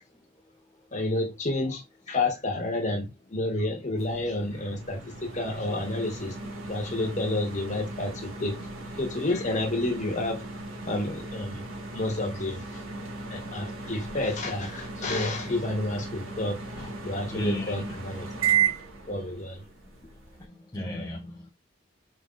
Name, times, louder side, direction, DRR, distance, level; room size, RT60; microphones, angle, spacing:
voice 1, 0.9-6.4 6.7-8.7 9.0-10.4 10.8-11.6 11.9-12.8 13.3-16.6 17.0-18.3 19.1-19.6, left 2 dB, 35° left, 1.3 m, -30 dB
sound 1, 4.0-20.4, right 6 dB, 85° right, 1.6 m, -35 dB
voice 2, 17.3-17.9 20.7-21.5, left 2 dB, 20° left, 0.6 m, -34 dB
5.3 x 3.8 x 2.5 m
head